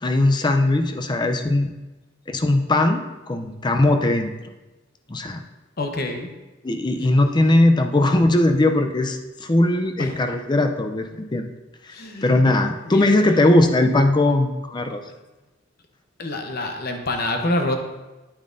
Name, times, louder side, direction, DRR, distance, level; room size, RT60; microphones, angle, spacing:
voice 1, 0.0-1.7 2.3-4.3 5.1-5.4 6.6-11.4 12.2-15.0, left 2 dB, 25° left, 6 dB, 0.5 m, -19 dB
voice 2, 5.8-6.3 10.0-10.2 11.9-12.3 12.8-13.5 16.2-17.8, left 2 dB, 55° left, 4 dB, 0.9 m, -27 dB
9.5 x 8.7 x 2.6 m, 1.1 s
head